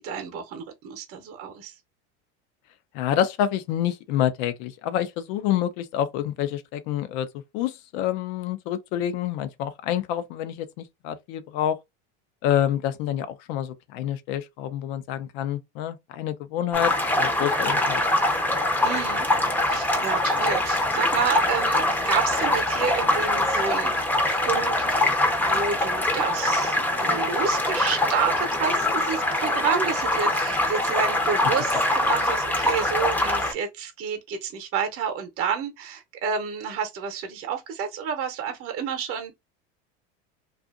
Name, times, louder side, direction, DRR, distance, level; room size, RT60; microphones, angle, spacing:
voice 1, 0.0-1.7 18.8-19.3 19.7-25.1 25.4-39.3, right 6 dB, 40° right, 0.8 m, -30 dB
voice 2, 2.9-7.3 7.5-11.8 12.4-18.0, left 10 dB, 65° left, 0.7 m, -27 dB
sound 1, 16.7-33.5, left 1 dB, 5° left, 0.6 m, -23 dB
2.6 x 2.5 x 2.4 m
supercardioid pair, 115°, 34 cm